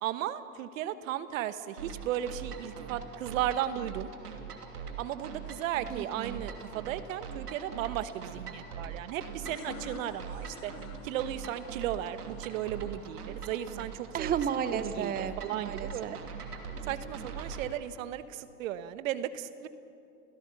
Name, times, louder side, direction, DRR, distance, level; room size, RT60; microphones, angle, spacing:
voice 1, 0.0-4.1 5.0-10.7 11.0-14.3 14.8-15.1 15.4-16.2 16.8-19.7, right 11 dB, 60° right, 13 dB, 1.3 m, -35 dB
sound 1, 1.8-17.6, right 6 dB, 80° right, 2.8 m, -42 dB
voice 2, 5.9-6.4 14.1-16.2, right 8 dB, 20° right, 12 dB, 0.9 m, -33 dB
sound 2, 9.3-14.7, left 11 dB, 65° left, 1.2 m, -51 dB
30.0 x 16.5 x 7.0 m, 2.6 s
hypercardioid pair, 100°, 45 cm